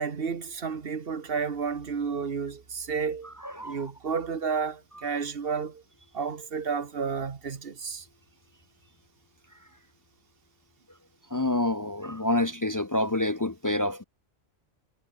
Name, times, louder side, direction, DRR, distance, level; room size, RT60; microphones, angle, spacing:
voice 1, 0.0-3.3 3.6-5.8 6.1-8.0, right 5 dB, 60° right, 1.6 m, -31 dB
voice 2, 3.4-3.9 11.3-14.0, left 1 dB, 25° left, 0.4 m, -27 dB
omnidirectional pair, 1.1 m